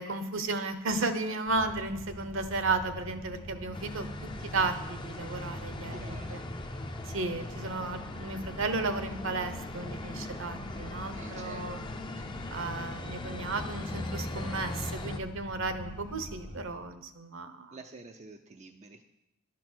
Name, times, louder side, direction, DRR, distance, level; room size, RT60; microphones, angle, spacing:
voice 1, 0.0-4.1 4.5-6.4 7.1-11.8 12.5-17.8, right 3 dB, 60° right, 10 dB, 0.9 m, -34 dB
sound 1, 1.5-16.6, equal, 90° right, 2.5 m, -45 dB
sound 2, 3.7-15.2, left 2 dB, 20° left, 0.5 m, -40 dB
voice 2, 5.9-6.4 11.1-11.9 12.2-12.3 17.7-19.0, right 3 dB, 30° right, 5 dB, 0.5 m, -48 dB
11.0 x 6.1 x 6.3 m, 0.88 s
head